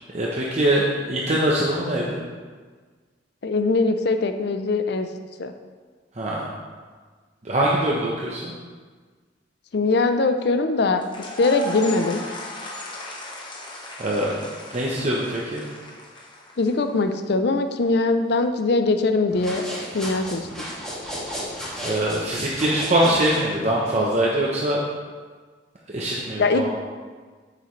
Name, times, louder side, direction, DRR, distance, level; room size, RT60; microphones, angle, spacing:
voice 1, 0.1-2.2 6.2-6.5 7.4-8.5 14.0-14.4 14.7-15.6 21.8-24.8 25.9-26.7, right 1 dB, 40° right, -4 dB, 0.8 m, -23 dB
voice 2, 3.4-5.1 5.4-5.5 9.7-11.0 11.4-12.2 16.6-19.6 19.9-20.7 26.4-26.7, left 3 dB, 65° left, 8 dB, 0.5 m, -21 dB
sound 1, 11.0-17.0, left 1 dB, 25° left, 1.1 m, -36 dB
sound 2, 19.3-23.5, equal, 5° left, 2.3 m, -33 dB
9.0 x 6.8 x 3.2 m, 1.5 s
head